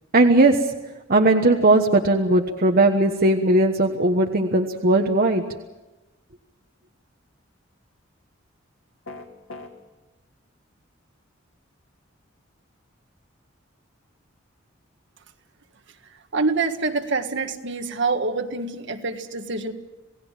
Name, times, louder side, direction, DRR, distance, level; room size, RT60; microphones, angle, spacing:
voice 1, 0.1-0.6 1.1-5.4, right 2 dB, 50° right, 3 dB, 1.3 m, -18 dB
sound 1, 9.0-9.7, left 2 dB, 70° left, 2.3 m, -38 dB
voice 2, 16.0-19.7, right 3 dB, 65° right, 6 dB, 1.8 m, -26 dB
28.0 x 18.0 x 7.5 m, 1.1 s
head